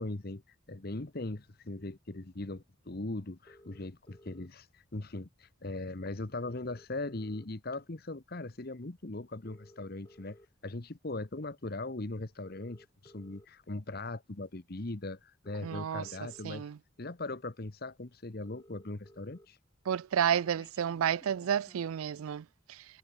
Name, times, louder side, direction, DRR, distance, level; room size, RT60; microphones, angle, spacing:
voice 1, 0.0-10.4 10.6-16.7 17.0-19.6, left 2 dB, 45° left, 1.1 m, -39 dB
sound 1, 3.5-4.5 5.7-5.8 6.0-6.1 6.3-7.7 8.2-8.5 9.3-10.5 11.2-11.4 12.3-13.5 14.7-14.8 15.3-16.5 17.1-17.2 17.5-17.6 17.9-18.0 18.2-19.5 19.8-21.9, left 1 dB, 20° left, 3.9 m, -58 dB
voice 2, 15.6-16.1 16.4-16.8 19.9-22.9, right 8 dB, 85° right, 0.4 m, -31 dB
head